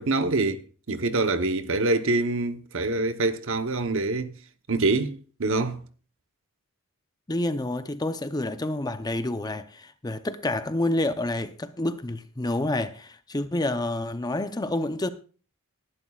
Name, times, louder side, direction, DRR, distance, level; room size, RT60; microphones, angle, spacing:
voice 1, 0.0-4.3 4.7-5.8, right 2 dB, 60° right, 1.0 m, -25 dB
voice 2, 7.3-15.1, left 1 dB, 20° left, 0.6 m, -28 dB
19.5 x 11.5 x 2.4 m
head